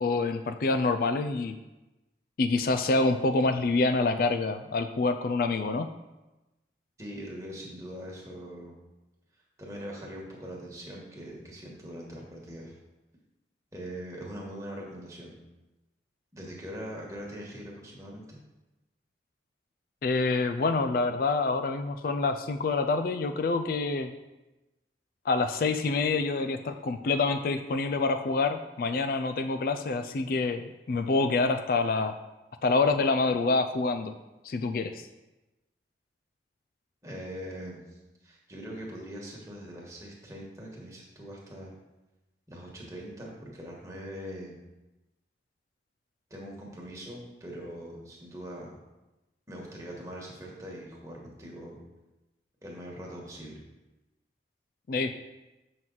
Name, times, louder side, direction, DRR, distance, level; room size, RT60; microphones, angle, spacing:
voice 1, 0.0-1.5 2.4-5.9 20.0-24.1 25.3-32.1 32.6-34.1 34.4-35.1 54.9-55.1, left 3 dB, 50° left, 8 dB, 0.3 m, -27 dB
voice 2, 7.0-8.8 9.6-12.8 13.7-15.4 16.3-18.4 37.0-37.8 38.2-41.7 42.5-44.6 46.3-48.7 49.5-51.8 52.6-53.6, equal, 15° right, -3 dB, 1.5 m, -42 dB
7.5 x 6.0 x 3.9 m, 1.0 s
head